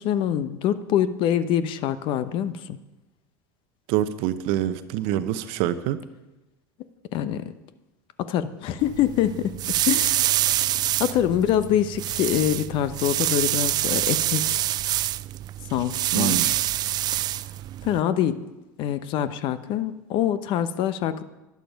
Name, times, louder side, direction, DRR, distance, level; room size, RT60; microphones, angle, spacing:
voice 1, 0.0-2.8 7.1-7.5 8.2-10.4 11.0-14.6 15.7-16.5 17.1-17.3 17.8-18.4 18.8-21.2, left 10 dB, 55° left, 13 dB, 0.8 m, -25 dB
voice 2, 3.9-6.0 16.1-16.5, right 12 dB, 65° right, 12 dB, 0.8 m, -25 dB
sound 1, 8.8-18.0, right 13 dB, 40° right, 0.3 m, -26 dB
11.0 x 11.0 x 5.2 m, 1.0 s
hypercardioid pair, 85°, 10 cm